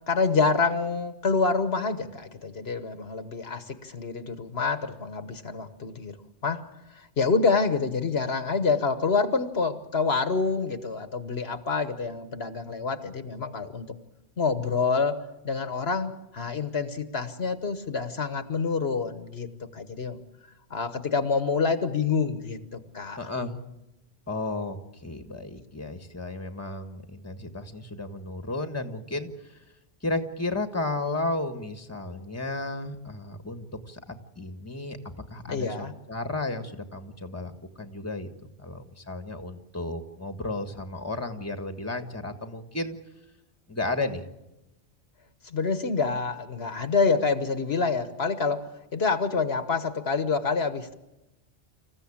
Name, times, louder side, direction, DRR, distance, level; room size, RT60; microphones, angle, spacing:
voice 1, 0.1-6.2 6.4-6.6 6.9-13.9 14.4-15.2 15.4-20.2 20.7-23.2 35.5-35.9 45.4-48.7 48.9-50.9, left 4 dB, 70° left, 10 dB, 1.5 m, -27 dB
voice 2, 23.2-23.6 24.3-29.6 30.0-35.0 35.3-38.3 38.6-43.0 43.7-44.2, left 2 dB, 15° left, 8 dB, 1.5 m, -33 dB
26.5 x 15.0 x 8.7 m, 0.95 s
omnidirectional pair, 1.1 m